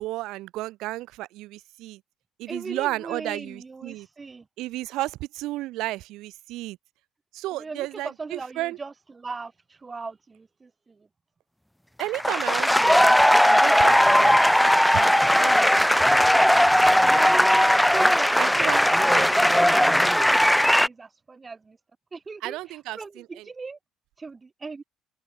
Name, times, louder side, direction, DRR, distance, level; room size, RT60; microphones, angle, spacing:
voice 1, 0.0-2.0 2.4-4.1 4.6-6.8 7.3-8.8 12.0-16.3 18.4-19.3 22.4-23.5, right 17 dB, 85° right, 5.6 m, -33 dB
voice 2, 2.5-4.4 7.6-11.0 17.0-21.8 22.1-23.8 24.2-24.8, right 4 dB, 20° right, 1.3 m, -38 dB
sound 1, 12.0-20.9, equal, ahead, 1.2 m, -18 dB
open air
cardioid pair, 140°, 0 cm